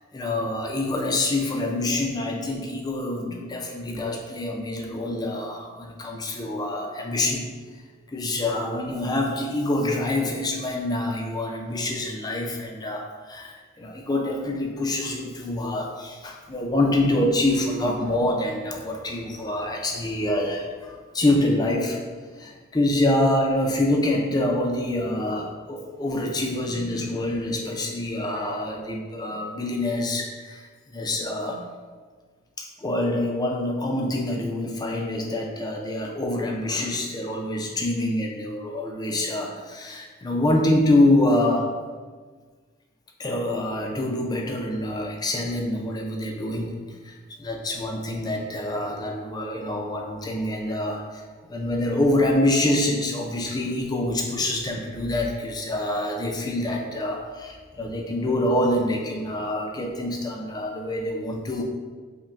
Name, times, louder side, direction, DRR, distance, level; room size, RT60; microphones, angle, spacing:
voice 1, 0.1-7.5 8.1-22.0 22.4-31.6 32.6-41.8 43.2-51.2 51.5-61.6, left 1 dB, 20° left, 1 dB, 0.4 m, -26 dB
5.4 x 2.2 x 2.5 m, 1.5 s
head